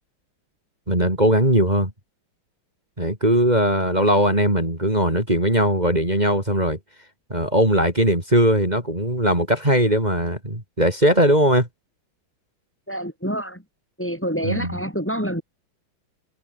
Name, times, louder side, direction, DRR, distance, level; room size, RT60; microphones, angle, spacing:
voice 1, 0.9-1.9 3.0-6.8 7.3-11.7 14.4-14.7, right 1 dB, 20° right, 6.1 m, -19 dB
voice 2, 12.9-13.6 14.0-15.4, equal, 5° left, 6.6 m, -27 dB
omnidirectional pair, 2.3 m